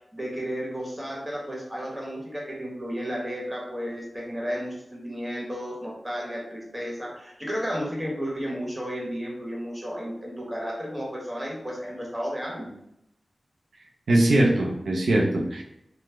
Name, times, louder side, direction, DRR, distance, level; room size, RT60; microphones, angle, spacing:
voice 1, 0.1-12.7, equal, 15° right, -3 dB, 1.3 m, -33 dB
voice 2, 14.1-15.6, right 1 dB, 90° right, -1 dB, 0.4 m, -21 dB
3.1 x 2.0 x 3.3 m, 0.81 s
cardioid pair, 40°, 0 cm